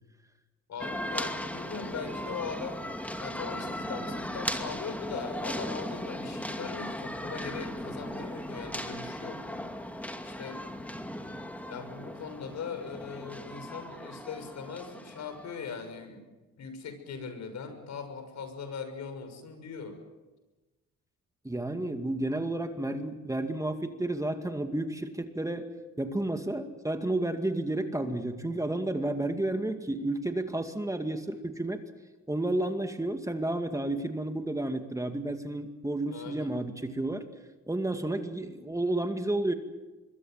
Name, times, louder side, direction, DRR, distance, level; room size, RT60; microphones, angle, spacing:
voice 1, 0.7-2.8 3.2-9.7 10.2-10.6 11.7-16.2 16.5-20.0 36.1-36.5, left 5 dB, 65° left, 8 dB, 6.4 m, -40 dB
sound 1, 0.8-15.8, equal, 5° left, 2.4 m, -37 dB
voice 2, 21.4-25.7 26.0-31.8 32.3-37.3 37.7-39.5, right 1 dB, 10° right, 6 dB, 2.3 m, -31 dB
25.5 x 22.5 x 7.9 m, 1.1 s
cardioid pair, 90°, 30 cm